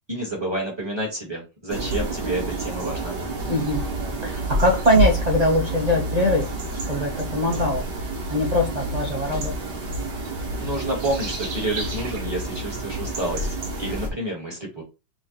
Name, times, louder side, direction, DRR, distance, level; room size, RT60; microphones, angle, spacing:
voice 1, 0.1-3.1 10.6-13.5 13.8-14.8, right 1 dB, 15° right, -3 dB, 2.1 m, -29 dB
sound 1, 1.7-14.1, right 2 dB, 65° right, 1.9 m, -28 dB
voice 2, 3.5-3.9 4.2-6.5 6.9-7.8 8.3-9.5, left 1 dB, 40° right, 0 dB, 0.6 m, -22 dB
5.5 x 3.2 x 2.9 m, 0.28 s
omnidirectional pair, 2.0 m